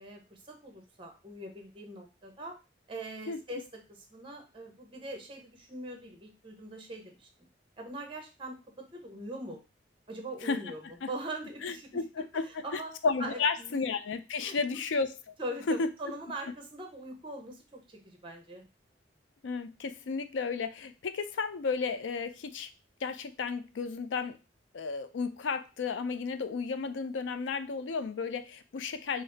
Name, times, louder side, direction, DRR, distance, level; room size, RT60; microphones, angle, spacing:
voice 1, 0.0-2.5 2.9-3.6 3.9-7.3 7.8-8.6 8.9-9.6 10.1-12.3 12.6-12.9 13.2-13.8 14.4-14.8 15.4-18.7, right 1 dB, 30° right, 4 dB, 0.8 m, -42 dB
voice 2, 11.6-15.2 15.7-15.9 19.4-22.7 23.0-24.4 24.7-29.2, left 4 dB, 90° left, 11 dB, 0.4 m, -33 dB
4.1 x 2.0 x 3.9 m, 0.29 s
head